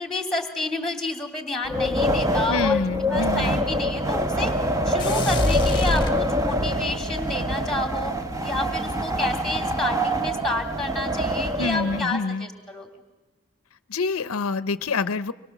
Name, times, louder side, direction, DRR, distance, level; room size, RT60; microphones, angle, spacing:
voice 1, 0.0-4.5 4.9-8.1 8.4-12.9, left 2 dB, ahead, 5 dB, 2.6 m, -30 dB
Wind, 1.6-12.0, equal, 15° right, 0.9 m, -25 dB
voice 2, 2.5-3.6 11.6-12.5 13.9-15.3, left 4 dB, 75° left, 14 dB, 0.7 m, -26 dB
sound 1, 5.0-6.8, left 1 dB, 20° left, 1.2 m, -26 dB
25.0 x 21.5 x 7.2 m, 1.2 s
head